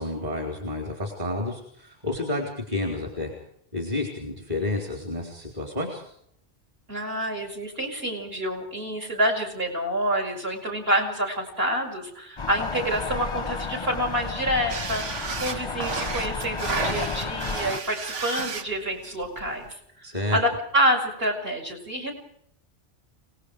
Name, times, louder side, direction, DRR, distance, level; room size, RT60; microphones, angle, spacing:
voice 1, 0.0-3.3 3.7-6.0 20.0-20.4, left 2 dB, 35° right, 3 dB, 4.2 m, -30 dB
voice 2, 6.9-15.1 15.4-19.7 20.3-22.1, right 1 dB, 55° right, 0 dB, 6.3 m, -27 dB
sound 1, 12.4-17.8, left 4 dB, 30° left, 0.8 m, -32 dB
sound 2, 14.7-19.7, right 5 dB, 85° right, 1.6 m, -33 dB
29.5 x 19.0 x 5.0 m, 0.69 s
omnidirectional pair, 1.2 m